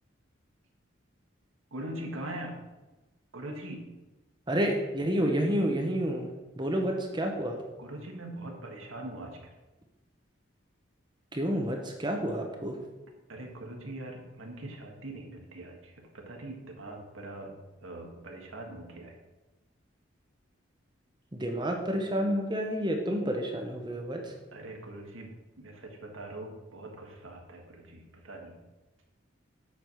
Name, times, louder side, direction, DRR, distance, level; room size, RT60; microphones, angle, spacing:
voice 1, 1.7-2.6 3.3-3.9 7.8-9.4 13.3-17.5 17.8-19.2 24.5-28.6, right 1 dB, 85° right, 2 dB, 1.6 m, -42 dB
voice 2, 4.5-7.6 11.3-12.8 21.3-24.3, equal, 20° right, 3 dB, 0.8 m, -29 dB
8.2 x 4.8 x 6.1 m, 1.1 s
head